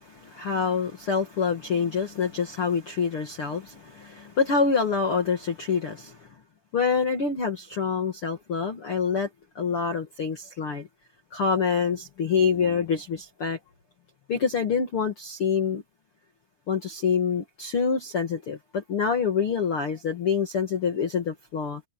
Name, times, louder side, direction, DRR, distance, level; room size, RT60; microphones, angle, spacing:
voice 1, 0.0-6.3 6.7-9.3 9.6-10.9 11.3-13.6 14.3-15.8 16.7-21.8, left 6 dB, 45° left, 2.2 m, -26 dB
omnidirectional pair, 4.7 m